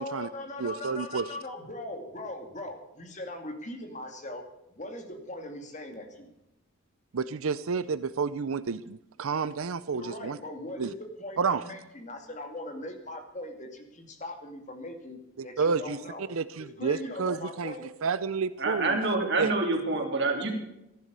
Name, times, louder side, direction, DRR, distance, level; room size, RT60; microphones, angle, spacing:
voice 1, 0.0-4.4 4.7-6.3 9.9-16.3 16.6-17.9, left 1 dB, 35° left, 5 dB, 2.3 m, -40 dB
voice 2, 0.6-1.3 7.1-10.4 10.8-10.9 11.4-11.6 15.4-17.7 18.0-19.0 19.4-19.5, right 5 dB, 75° right, 15 dB, 0.5 m, -30 dB
voice 3, 18.6-20.5, right 3 dB, 55° right, 2 dB, 3.3 m, -27 dB
14.5 x 11.5 x 6.8 m, 0.88 s
head